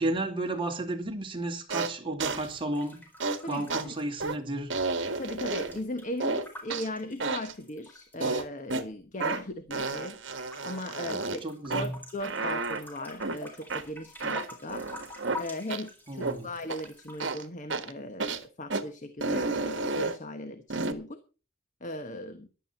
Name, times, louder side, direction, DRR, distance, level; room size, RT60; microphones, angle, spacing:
voice 1, 0.0-3.0 3.5-4.7 11.4-12.0 16.1-16.5, right 2 dB, 25° right, 2.4 m, -32 dB
sound 1, 1.7-1.9 2.2-2.5 3.2-3.4 3.7-3.8 4.2-4.4 4.7-5.8 6.2-6.9 7.2-7.5 8.2-8.8 9.2-9.4 9.7-11.4 11.7-11.9 12.2-12.8 13.2-13.4 13.7-13.8 14.2-15.4 15.7-15.8 16.2-16.4 16.7-16.8 17.2-17.4 17.7-17.9 18.2-18.4 18.7-18.8 19.2-20.2 20.7-20.9, right 3 dB, 60° right, 1.6 m, -31 dB
sound 2, 2.7-4.8 5.0-8.4 9.0-10.0 10.3-17.2, left 2 dB, 10° left, 4.4 m, -47 dB
voice 2, 3.4-3.9 5.2-14.9 15.4-21.2 21.8-22.5, left 1 dB, 40° left, 1.1 m, -38 dB
15.0 x 11.5 x 4.3 m
head